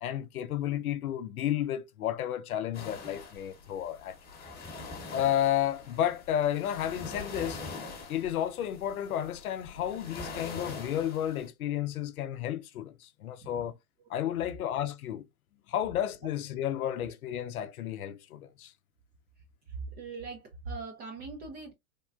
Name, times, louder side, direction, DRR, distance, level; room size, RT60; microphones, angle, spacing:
voice 1, 0.0-4.2 5.1-7.6 8.1-13.8 14.1-15.3 15.7-18.7, left 11 dB, 85° left, 0.6 m, -32 dB
sound 1, 2.7-11.5, left 3 dB, 20° left, 1.0 m, -44 dB
voice 2, 19.7-21.7, right 4 dB, 25° right, 0.4 m, -41 dB
3.5 x 2.2 x 2.3 m
hypercardioid pair, 110°, 42 cm